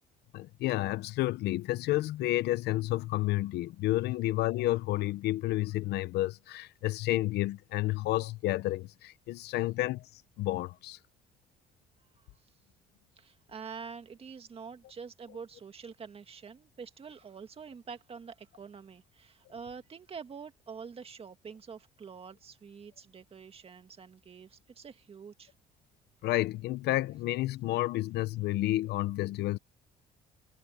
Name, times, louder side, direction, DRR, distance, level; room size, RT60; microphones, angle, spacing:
voice 1, 0.3-10.1 10.4-11.0 26.2-29.6, left 16 dB, 75° left, 0.8 m, -30 dB
voice 2, 13.2-25.5, right 6 dB, 35° right, 2.1 m, -46 dB
cardioid pair, 110°, 17 cm